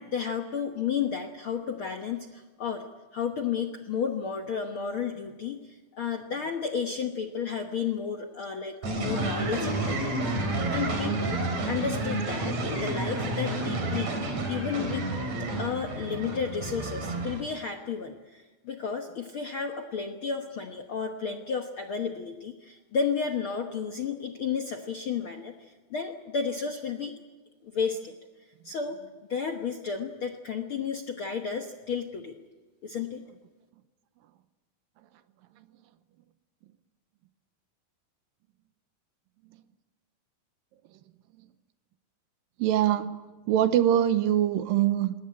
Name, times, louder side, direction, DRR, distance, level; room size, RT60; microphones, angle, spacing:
voice 1, 0.0-2.9 3.1-10.4 10.7-14.1 14.5-15.1 15.4-27.1 27.6-28.1 28.6-29.0 29.3-32.3 32.8-33.2, left 6 dB, 65° left, 4 dB, 1.3 m, -32 dB
sound 1, 8.8-17.4, right 2 dB, 50° right, 4.9 m, -30 dB
voice 2, 42.6-45.1, right 11 dB, 80° right, 12 dB, 2.6 m, -24 dB
21.0 x 18.0 x 9.7 m, 1.2 s
omnidirectional pair, 4.1 m